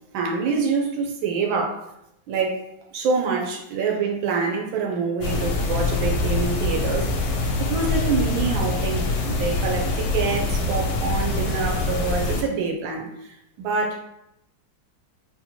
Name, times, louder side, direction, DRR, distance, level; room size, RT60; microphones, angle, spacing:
voice 1, 0.1-1.8 2.3-2.6 2.9-7.1 7.6-14.0, right 4 dB, 85° right, 1 dB, 1.4 m, -26 dB
sound 1, 5.2-12.4, left 2 dB, 85° left, 1.4 m, -24 dB
4.2 x 2.2 x 2.8 m, 0.82 s
omnidirectional pair, 2.1 m